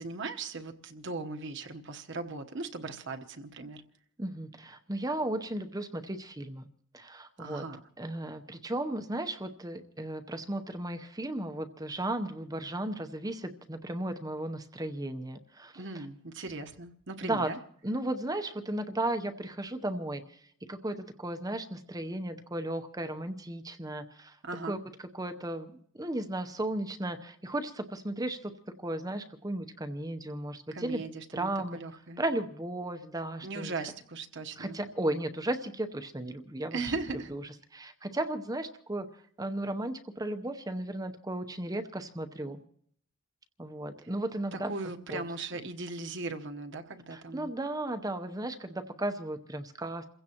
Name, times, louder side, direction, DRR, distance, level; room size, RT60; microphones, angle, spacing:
voice 1, 0.0-3.8 7.4-7.8 15.7-17.6 24.4-24.8 30.7-32.2 33.4-34.8 36.7-37.3 44.5-47.5, right 3 dB, 55° right, 6 dB, 1.1 m, -38 dB
voice 2, 4.2-6.7 6.9-7.6 8.0-15.8 17.2-17.5 17.8-24.4 24.6-24.8 25.1-28.5 28.8-31.0 31.3-31.8 32.2-33.9 34.6-36.9 37.3-37.4 37.7-39.1 39.4-42.6 43.6-44.7 45.1-45.2 47.1-50.0, right 1 dB, 15° right, 7 dB, 0.8 m, -35 dB
28.5 x 16.0 x 3.0 m, 0.63 s
head